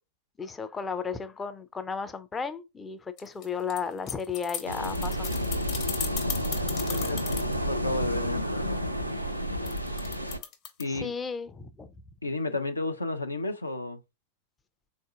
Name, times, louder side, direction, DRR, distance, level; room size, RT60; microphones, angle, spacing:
voice 1, 0.4-5.3 10.9-11.9, left 6 dB, 15° left, 0.4 m, -34 dB
sound 1, 3.2-7.5 9.6-10.8, left 8 dB, 40° left, 0.9 m, -36 dB
sound 2, 4.6-10.4, equal, 90° right, 0.4 m, -30 dB
voice 2, 6.6-8.8 10.8-11.1 12.2-14.0, left 2 dB, 80° left, 0.4 m, -32 dB
3.8 x 2.6 x 2.3 m
figure-of-eight pair, 90°, 0 cm